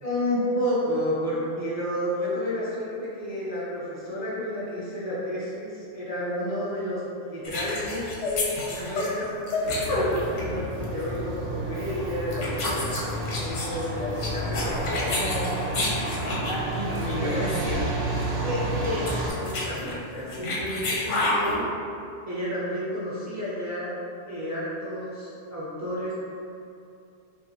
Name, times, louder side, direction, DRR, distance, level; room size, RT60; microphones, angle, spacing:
voice 1, 0.0-15.5 15.8-15.9 17.2-17.7 18.4-21.7 22.3-24.0 24.3-26.1, equal, 20° right, -9 dB, 0.5 m, -31 dB
sound 1, 7.4-10.6 10.8-11.1 11.8-12.0 12.3-16.6 17.0-17.1 17.4-17.5 17.6-17.9 18.2-18.3 18.7-21.6, left 2 dB, 85° left, 1.0 m, -29 dB
Truck, 9.6-19.3, right 1 dB, 90° right, 1.0 m, -31 dB
voice 2, 14.5-17.9, equal, 60° left, -4 dB, 0.7 m, -32 dB
4.5 x 2.5 x 2.8 m, 2.6 s
omnidirectional pair, 1.2 m